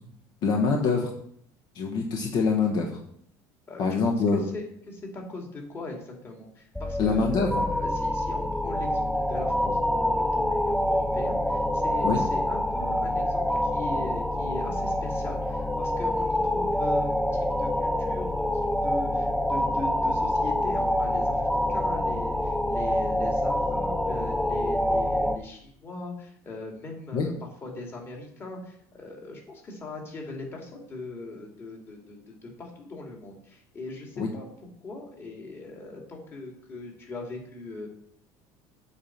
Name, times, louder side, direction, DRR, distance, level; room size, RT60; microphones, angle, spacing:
voice 1, 0.4-1.1 1.7-3.0 3.8-4.4 7.0-7.6 12.0-12.3 27.1-27.3 34.2-34.3, left 4 dB, 55° left, 1 dB, 1.3 m, -25 dB
voice 2, 3.7-4.0 4.3-18.3 18.8-21.4 21.7-27.3 27.6-34.4 34.8-37.9, left 2 dB, 30° left, 0 dB, 2.5 m, -40 dB
sound 1, 6.8-25.4, left 1 dB, 5° left, 0.4 m, -26 dB
8.7 x 4.4 x 7.3 m, 0.67 s
cardioid pair, 135°, 9 cm